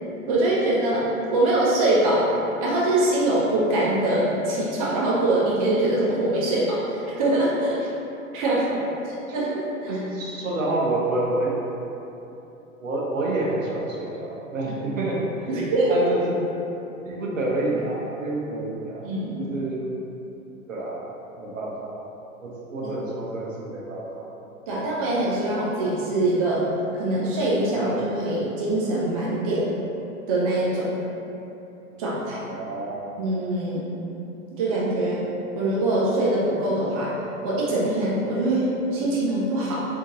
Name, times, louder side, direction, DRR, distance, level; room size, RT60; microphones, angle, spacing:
voice 1, 0.3-1.1 1.3-2.3 2.6-7.8 8.3-8.6 9.3-9.9 15.5-16.1 19.0-19.5 22.8-22.9 24.7-26.7 26.9-29.7 30.3-30.9 32.0-32.4 33.2-33.8 34.6-35.2 35.6-37.1 37.4-39.8, right 1 dB, 30° right, -6 dB, 0.4 m, -23 dB
voice 2, 8.5-8.8 9.9-11.6 12.8-16.3 17.0-19.0 19.4-19.8 20.7-21.0 21.4-22.0 22.4-24.3 32.5-33.0, right 2 dB, 65° right, -3 dB, 0.8 m, -28 dB
3.6 x 2.6 x 2.5 m, 3.0 s
figure-of-eight pair, 100°, 42 cm